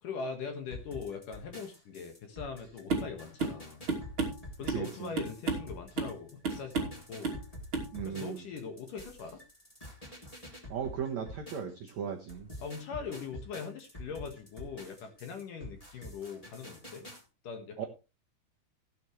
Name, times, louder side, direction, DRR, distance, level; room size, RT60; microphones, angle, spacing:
voice 1, 0.0-3.8 4.6-7.4 8.0-9.4 12.6-17.1 17.4-17.9, left 5 dB, 55° left, 5 dB, 2.7 m, -41 dB
sound 1, 0.7-11.9 12.3-17.2, left 1 dB, 10° left, 2.5 m, -48 dB
sound 2, 2.9-3.1 3.4-3.6 3.9-4.9 5.2-5.7 6.0-6.2 6.4-7.0 7.2-7.4 7.7-7.9, right 3 dB, 35° right, 2.9 m, -32 dB
voice 2, 4.7-5.1 7.9-8.4 10.7-12.5 17.8-17.9, right 7 dB, 85° right, 3 dB, 1.5 m, -37 dB
17.0 x 9.2 x 3.2 m, 0.29 s
omnidirectional pair, 5.3 m